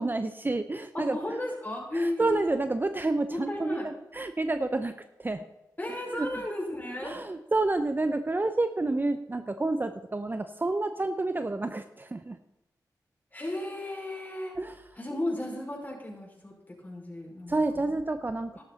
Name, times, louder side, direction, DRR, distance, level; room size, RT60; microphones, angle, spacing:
voice 1, 0.0-1.2 1.9-5.4 6.1-6.3 7.0-12.4 14.5-14.8 17.5-18.5, right 2 dB, 30° right, 10 dB, 0.7 m, -29 dB
voice 2, 0.9-2.4 3.3-3.9 5.8-7.2 13.3-14.6 15.0-18.0, left 1 dB, 25° left, -2 dB, 5.6 m, -34 dB
12.5 x 12.0 x 4.1 m, 0.94 s
cardioid pair, 55°, 7 cm